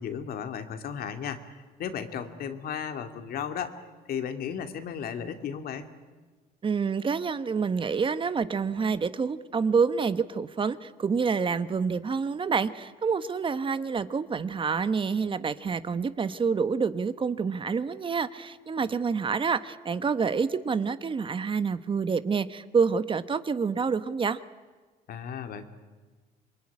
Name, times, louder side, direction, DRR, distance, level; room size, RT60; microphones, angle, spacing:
voice 1, 0.0-1.4 1.8-3.7 4.1-5.9 25.1-25.6, left 8 dB, 60° left, 8 dB, 2.4 m, -34 dB
voice 2, 6.6-24.4, right 5 dB, 30° right, 13 dB, 1.1 m, -27 dB
27.0 x 22.5 x 9.9 m, 1.3 s
cardioid pair, 110°, 17 cm